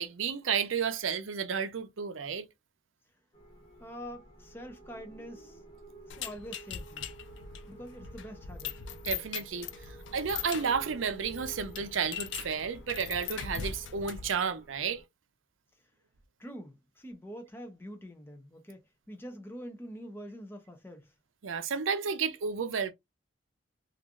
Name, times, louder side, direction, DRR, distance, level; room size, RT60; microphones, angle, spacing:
voice 1, 0.0-2.5 9.0-9.7 10.1-15.0 21.4-22.9, right 6 dB, 85° right, 0.5 m, -32 dB
sound 1, 3.3-15.0, right 3 dB, 30° left, 1.0 m, -52 dB
voice 2, 3.8-5.6 6.0-7.1 7.7-8.8 16.4-21.1, equal, 10° left, 0.5 m, -45 dB
sound 2, 6.1-14.4, left 8 dB, 65° left, 0.4 m, -41 dB
3.1 x 2.5 x 2.2 m
head